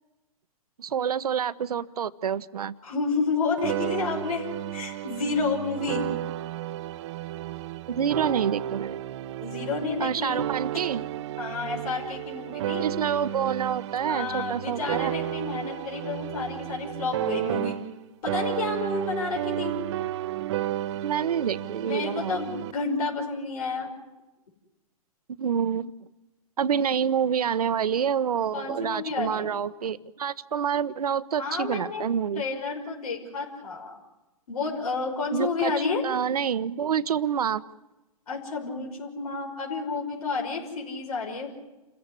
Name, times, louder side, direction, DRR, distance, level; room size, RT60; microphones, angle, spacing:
voice 1, 0.8-2.7 7.9-9.0 10.0-11.0 12.8-15.1 21.0-22.4 25.3-25.9 26.6-32.4 35.3-35.7 36.0-37.6, right 8 dB, 80° right, 15 dB, 1.0 m, -27 dB
voice 2, 2.8-6.0 9.4-10.4 11.4-12.9 14.0-17.8 18.2-19.8 21.8-23.9 28.5-29.5 31.4-32.0 32.3-34.0 34.5-36.0 38.3-41.6, left 4 dB, 70° left, 0 dB, 5.7 m, -30 dB
sound 1, 3.6-18.0 18.3-22.7, right 13 dB, 50° right, 0.9 m, -33 dB
28.5 x 15.0 x 9.8 m, 1.0 s
hypercardioid pair, 140°, 19 cm